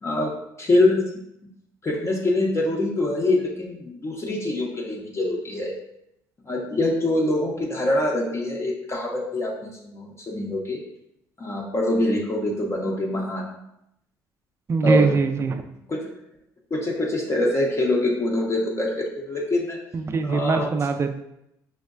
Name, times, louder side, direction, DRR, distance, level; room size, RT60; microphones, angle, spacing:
voice 1, 0.0-1.0 1.8-5.7 6.4-10.8 11.4-13.5 14.8-15.2 15.9-16.2 16.7-19.8 20.2-20.7, left 1 dB, 30° left, -1 dB, 0.6 m, -24 dB
voice 2, 14.7-15.6 19.9-21.2, right 4 dB, 30° right, 7 dB, 0.4 m, -22 dB
5.2 x 2.1 x 2.4 m, 0.81 s
supercardioid pair, 75°, 9 cm